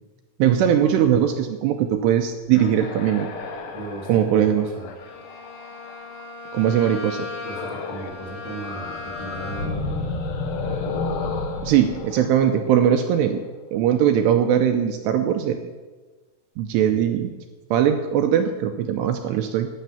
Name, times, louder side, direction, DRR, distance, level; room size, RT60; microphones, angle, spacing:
voice 1, 0.4-3.3 4.1-4.7 6.5-7.3 11.6-13.4 13.7-15.6 16.6-17.3 17.7-19.7, right 9 dB, 85° right, 5 dB, 2.6 m, -20 dB
sound 1, 2.5-6.3 7.4-8.2 8.5-13.3, left 3 dB, 65° left, 2.2 m, -32 dB
voice 2, 3.7-4.9 7.4-10.0 16.7-17.1, right 2 dB, 15° left, -2 dB, 1.2 m, -36 dB
Bowed string instrument, 4.9-9.9, left 3 dB, 90° left, 5.1 m, -37 dB
12.0 x 9.5 x 7.1 m, 1.3 s
omnidirectional pair, 5.4 m